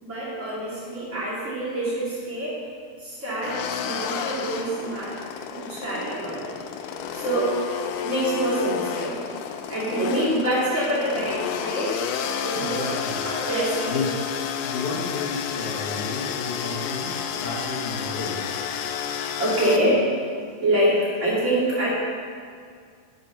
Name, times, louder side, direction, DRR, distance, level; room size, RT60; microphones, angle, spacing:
voice 1, 0.0-2.6 3.0-5.2 5.5-6.5 7.0-7.5 8.0-9.2 9.7-11.9 12.4-12.8 13.2-14.0 19.4-20.0 20.6-21.9, right 1 dB, 25° right, -8 dB, 2.8 m, -25 dB
sound 1, 3.4-19.8, left 8 dB, 85° left, 2.1 m, -31 dB
voice 2, 12.5-13.2 13.8-14.1 14.6-18.5, left 3 dB, 65° left, -4 dB, 2.9 m, -31 dB
11.5 x 5.4 x 5.7 m, 2.1 s
omnidirectional pair, 3.7 m